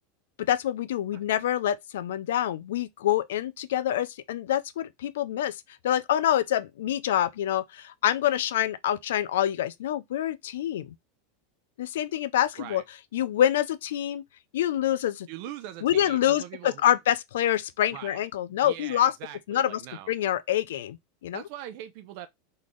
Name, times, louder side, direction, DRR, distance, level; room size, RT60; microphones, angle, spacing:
voice 1, 0.5-10.9 11.8-12.8 13.1-14.2 14.5-15.3 15.8-19.1 19.5-19.8 20.1-21.0 21.2-21.4, left 11 dB, 90° left, 0.6 m, -26 dB
voice 2, 15.3-16.8 17.9-18.3 18.6-20.1 21.3-22.3, right 12 dB, 60° right, 0.6 m, -41 dB
4.0 x 3.3 x 3.7 m
supercardioid pair, 145°, 0 cm